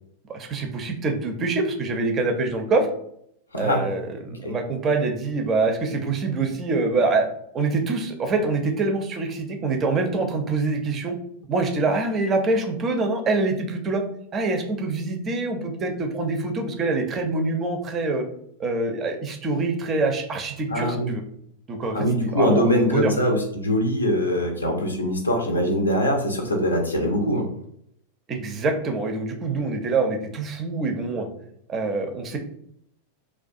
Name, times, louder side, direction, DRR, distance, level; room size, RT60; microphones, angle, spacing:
voice 1, 0.3-2.9 3.5-4.1 4.4-7.3 7.5-11.2 11.5-14.0 14.3-18.2 18.6-21.2 21.7-23.1 28.3-31.3 31.7-32.4, right 3 dB, 25° right, 5 dB, 0.4 m, -25 dB
voice 2, 3.5-3.9 4.4-4.5 20.7-21.1 21.9-27.5, equal, 80° left, 2 dB, 0.5 m, -22 dB
2.3 x 2.2 x 2.5 m, 0.70 s
figure-of-eight pair, 90°, 0 cm